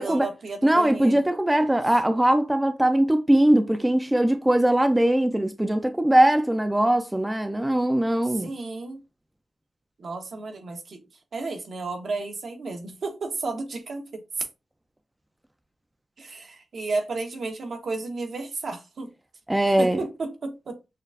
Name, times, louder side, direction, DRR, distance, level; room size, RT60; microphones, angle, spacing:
voice 1, 0.0-1.2 8.2-9.0 10.0-11.0 11.3-14.5 16.2-19.1 19.8-20.8, right 3 dB, 65° right, 0.9 m, -33 dB
voice 2, 0.6-8.5 19.5-20.0, right 1 dB, 10° right, 0.4 m, -21 dB
6.4 x 2.4 x 2.4 m
wide cardioid pair, 100°, 0 cm